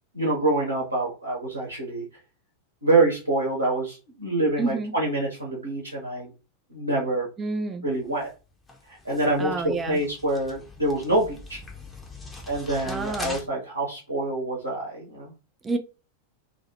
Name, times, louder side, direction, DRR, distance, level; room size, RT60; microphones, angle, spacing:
voice 1, 0.1-2.0 2.8-6.3 6.7-7.3 7.8-8.3 8.9-11.6 12.5-15.3, right 2 dB, 85° right, 0.9 m, -26 dB
voice 2, 4.6-4.9 7.4-7.9 9.4-10.0 12.8-13.4 15.6-15.8, right 3 dB, 20° right, 0.4 m, -29 dB
sound 1, 8.0-13.4, left 2 dB, 10° left, 0.7 m, -42 dB
2.5 x 2.3 x 2.9 m
figure-of-eight pair, 90°, 0 cm